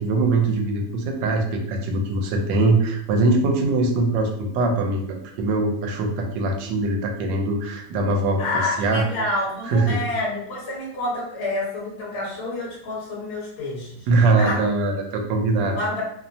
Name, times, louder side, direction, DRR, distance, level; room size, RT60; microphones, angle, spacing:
voice 1, 0.0-8.4 8.8-9.0 9.7-10.0 14.1-15.8, right 2 dB, 85° right, 3 dB, 1.2 m, -22 dB
voice 2, 8.4-14.1 14.4-14.6 15.8-16.0, left 2 dB, 45° left, -5 dB, 1.1 m, -28 dB
3.0 x 2.0 x 2.6 m, 0.71 s
omnidirectional pair, 1.9 m